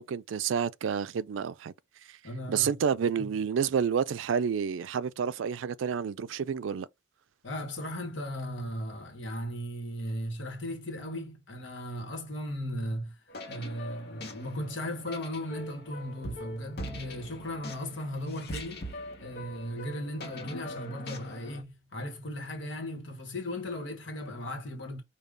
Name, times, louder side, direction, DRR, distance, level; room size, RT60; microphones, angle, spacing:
voice 1, 0.0-1.7 2.1-2.2 2.5-6.9, right 7 dB, 85° right, 0.4 m, -29 dB
voice 2, 2.2-2.7 3.2-3.3 7.4-13.2 13.5-18.9 19.2-25.0, left 1 dB, 75° left, 1.2 m, -37 dB
sound 1, 13.3-21.6, left 1 dB, 55° left, 0.9 m, -42 dB
5.1 x 2.3 x 3.3 m
head